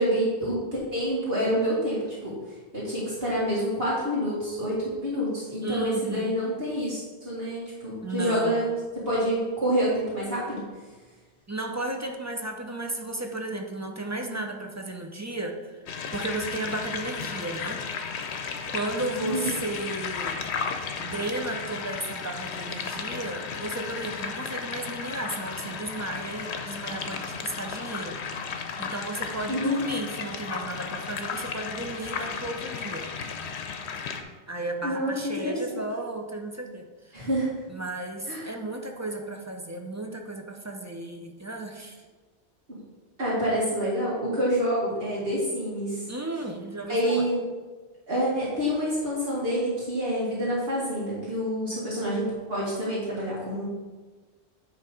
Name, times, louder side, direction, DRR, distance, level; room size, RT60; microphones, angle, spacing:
voice 1, 0.0-2.4 2.7-7.0 7.2-10.7 19.3-19.5 29.5-29.9 34.8-35.8 37.1-37.5 38.3-38.5 43.2-46.0 46.9-47.4 48.1-53.7, equal, 60° right, -8 dB, 2.2 m, -27 dB
voice 2, 5.6-6.4 8.0-8.7 11.5-15.8 16.1-17.8 18.7-20.4 21.0-28.2 28.8-33.1 34.5-37.3 37.7-42.0 46.1-47.3, right 2 dB, 20° right, 2 dB, 0.5 m, -34 dB
sound 1, 15.9-34.2, left 5 dB, 80° left, 1.0 m, -34 dB
9.7 x 3.4 x 4.9 m, 1.3 s
omnidirectional pair, 1.1 m